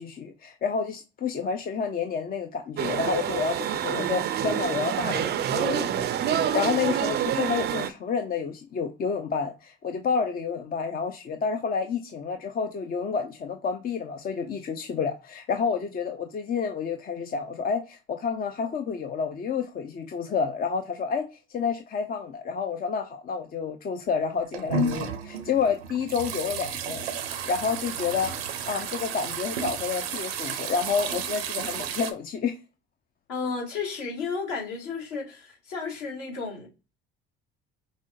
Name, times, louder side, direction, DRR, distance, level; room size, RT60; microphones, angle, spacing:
voice 1, 0.0-21.3 21.5-28.3 28.6-32.5, left 6 dB, 30° left, 0.5 m, -29 dB
sound 1, 2.8-7.9, right 10 dB, 35° right, 0.5 m, -27 dB
Household Draining System Exterior, 24.3-32.1, right 5 dB, 75° right, 0.6 m, -32 dB
voice 2, 33.3-36.7, left 5 dB, 55° left, 2.2 m, -33 dB
6.0 x 2.1 x 2.6 m
figure-of-eight pair, 55°, 30 cm